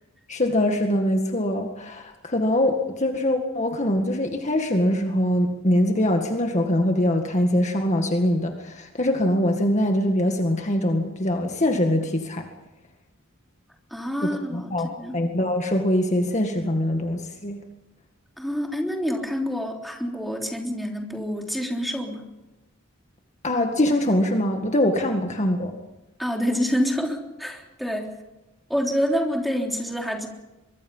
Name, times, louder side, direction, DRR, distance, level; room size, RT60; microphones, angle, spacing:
voice 1, 0.3-12.5 14.2-17.6 23.4-25.8, left 1 dB, 35° left, 4 dB, 2.0 m, -23 dB
voice 2, 13.9-15.2 18.4-22.2 26.2-28.1 28.7-30.3, equal, ahead, 1 dB, 3.5 m, -27 dB
24.0 x 23.5 x 5.6 m, 1.0 s
head